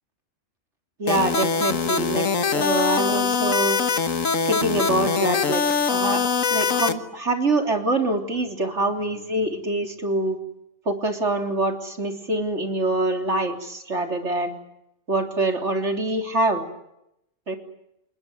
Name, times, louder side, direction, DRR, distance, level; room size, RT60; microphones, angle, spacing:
voice 1, 1.0-2.3 2.5-3.8 4.5-6.2 6.5-10.4 10.9-14.6 15.1-16.6 17.5-17.6, right 2 dB, 60° right, 4 dB, 3.9 m, -25 dB
sound 1, 1.1-6.9, left 5 dB, 85° left, 1.8 m, -23 dB
28.5 x 20.5 x 9.6 m, 0.82 s
omnidirectional pair, 1.3 m